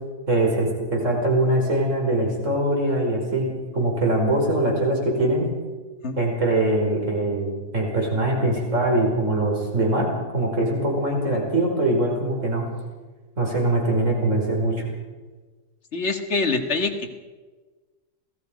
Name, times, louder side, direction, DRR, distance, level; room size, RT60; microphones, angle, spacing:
voice 1, 0.3-3.5 3.7-5.5 6.2-12.6 13.4-14.9, right 1 dB, 45° right, 0 dB, 5.6 m, -22 dB
voice 2, 15.9-17.1, left 3 dB, 40° left, 6 dB, 2.1 m, -25 dB
27.5 x 18.5 x 5.2 m, 1.3 s
omnidirectional pair, 1.9 m